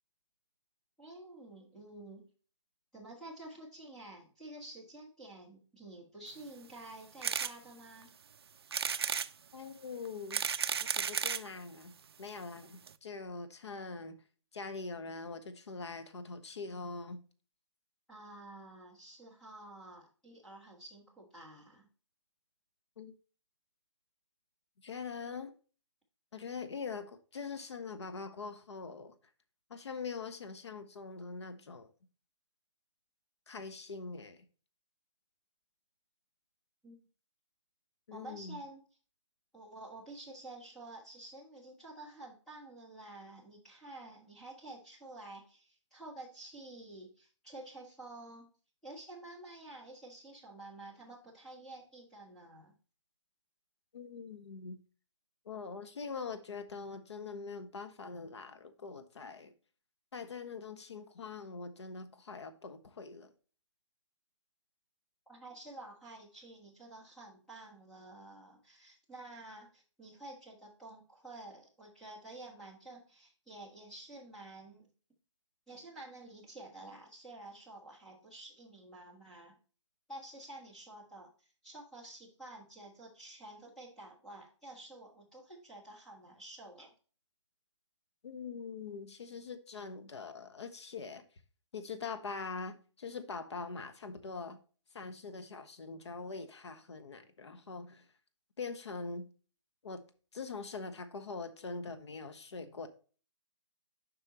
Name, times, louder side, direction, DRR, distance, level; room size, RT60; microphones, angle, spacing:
voice 1, 1.0-2.2 2.9-8.1 18.1-21.9 36.8-37.0 38.1-38.8 39.5-48.5 48.8-52.7 65.3-74.9 75.7-79.6 80.1-86.9, right 2 dB, 5° left, 1.5 m, -50 dB
sound 1, 7.2-7.5 8.0-8.1 8.7-9.3 10.1-11.5 12.3-12.4 12.6-12.7 12.9-13.0, right 7 dB, 55° right, 0.4 m, -33 dB
voice 2, 9.5-10.4 10.9-14.2 14.5-17.2 23.0-23.2 24.8-25.5 26.3-29.2 29.7-31.9 33.5-34.5 38.1-38.6 53.9-54.8 55.4-59.5 60.1-63.3 88.2-91.2 91.7-94.6 94.9-98.1 98.6-99.3 99.8-100.0 100.3-102.9, left 4 dB, 65° left, 1.2 m, -43 dB
7.8 x 5.4 x 3.0 m
hypercardioid pair, 170°, 16 cm